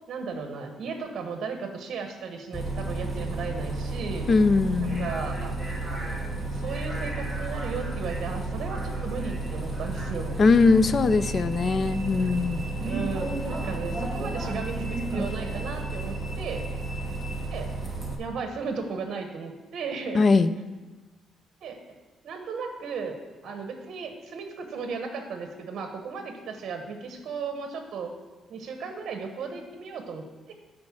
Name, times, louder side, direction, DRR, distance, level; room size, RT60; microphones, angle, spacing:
voice 1, 0.1-4.3 4.8-5.5 6.5-10.4 12.8-16.7 17.5-17.7 18.2-20.2 21.6-21.8 22.2-23.2 23.4-28.1 28.5-30.5, right 5 dB, 55° right, 5 dB, 1.1 m, -35 dB
Bus, 2.5-18.1, right 2 dB, ahead, 1.4 m, -32 dB
voice 2, 4.3-5.1 10.4-12.6 20.1-20.5, left 4 dB, 35° left, 13 dB, 0.4 m, -21 dB
10.5 x 4.4 x 7.3 m, 1.2 s
cardioid pair, 145°, 0 cm